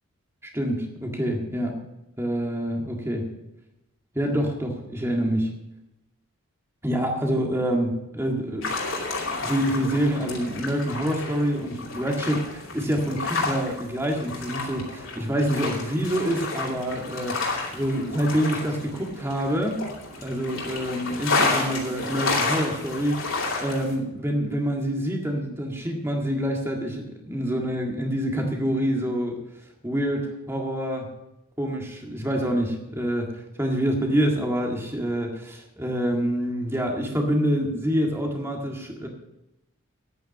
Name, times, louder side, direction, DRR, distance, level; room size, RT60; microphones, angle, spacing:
voice 1, 0.5-1.8 2.2-3.2 4.2-5.5 6.8-8.6 9.4-19.8 20.2-29.3 29.8-31.1 31.6-33.3 33.6-39.1, equal, 10° right, 1 dB, 1.8 m, -26 dB
sound 1, 8.6-24.0, left 3 dB, 65° left, 2.6 m, -30 dB
9.5 x 8.8 x 7.3 m, 0.92 s
head